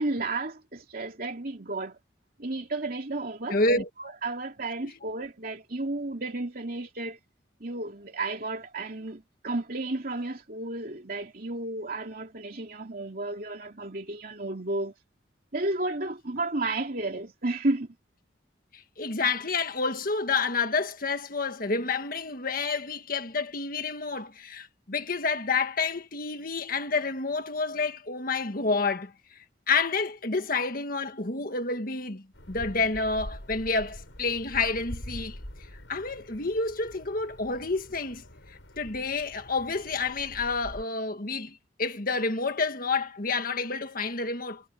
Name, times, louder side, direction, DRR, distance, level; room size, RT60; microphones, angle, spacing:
voice 1, 0.0-2.0 2.4-7.2 7.6-14.9 15.5-17.9, right 2 dB, 50° right, 2.9 m, -32 dB
voice 2, 3.5-3.9 18.7-29.1 29.7-35.4 35.9-44.6, left 4 dB, 50° left, 1.7 m, -29 dB
sound 1, 32.3-40.8, equal, 85° left, 5.5 m, -44 dB
head